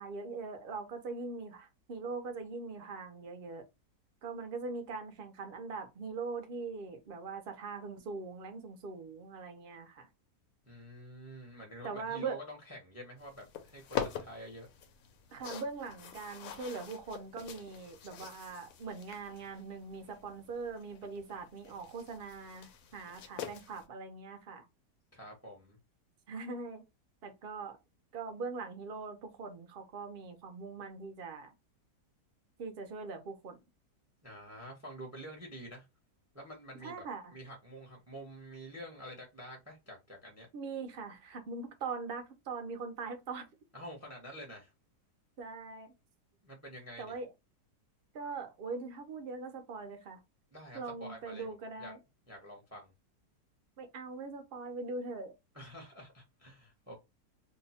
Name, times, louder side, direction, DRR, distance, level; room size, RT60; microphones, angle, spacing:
voice 1, 0.0-3.6 4.2-10.1 11.8-12.4 15.3-24.6 26.3-26.8 27.2-27.8 28.1-31.5 32.6-33.6 36.8-37.3 40.5-43.5 45.4-45.9 47.0-47.3 48.1-50.2 50.7-52.0 53.8-55.3, right 4 dB, 55° right, 0.6 m, -41 dB
voice 2, 10.7-14.7 25.1-25.8 34.2-35.9 36.3-37.0 37.3-40.5 43.7-44.7 46.4-47.1 50.5-51.5 51.8-51.9 52.3-52.9 55.5-56.9, equal, 15° right, 0.6 m, -48 dB
sound 1, 13.2-23.9, left 8 dB, 65° left, 0.9 m, -45 dB
2.8 x 2.2 x 4.1 m
omnidirectional pair, 1.8 m